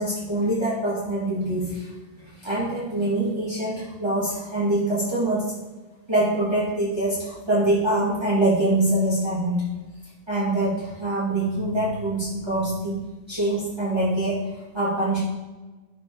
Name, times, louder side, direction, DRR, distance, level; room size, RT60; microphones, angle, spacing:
voice 1, 0.0-1.9 2.4-5.5 6.1-9.7 10.3-15.2, right 1 dB, 25° right, -10 dB, 1.8 m, -24 dB
11.0 x 3.8 x 3.7 m, 1.2 s
omnidirectional pair, 1.2 m